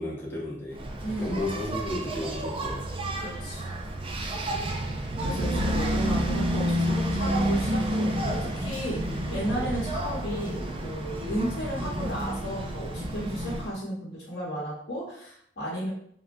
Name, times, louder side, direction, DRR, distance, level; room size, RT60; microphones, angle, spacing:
voice 1, 0.0-0.9 1.2-2.8 9.1-9.2, left 1 dB, 15° left, -6 dB, 0.8 m, -33 dB
Engine, 0.7-13.7, right 1 dB, 30° right, 0.3 m, -30 dB
voice 2, 1.0-1.5 3.2-3.7 5.2-15.9, equal, 85° left, -7 dB, 1.0 m, -34 dB
3.7 x 2.1 x 2.5 m, 0.67 s
head